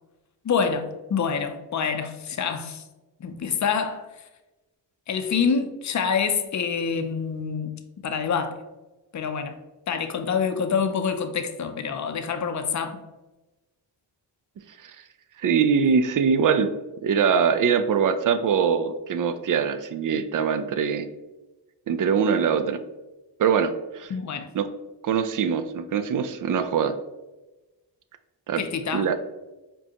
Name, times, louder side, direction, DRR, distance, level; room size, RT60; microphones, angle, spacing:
voice 1, 0.4-2.8 3.2-4.1 5.1-7.7 8.0-8.6 9.1-9.6 9.9-13.0 24.1-24.5 28.6-29.1, left 6 dB, 40° left, 0.5 m, -26 dB
voice 2, 15.4-16.7 17.0-21.1 21.9-22.8 23.4-24.1 24.5-24.7 25.0-26.9 28.5-28.6 28.9-29.2, right 6 dB, 50° right, 0.4 m, -23 dB
5.1 x 2.3 x 2.8 m
cardioid pair, 50°, 44 cm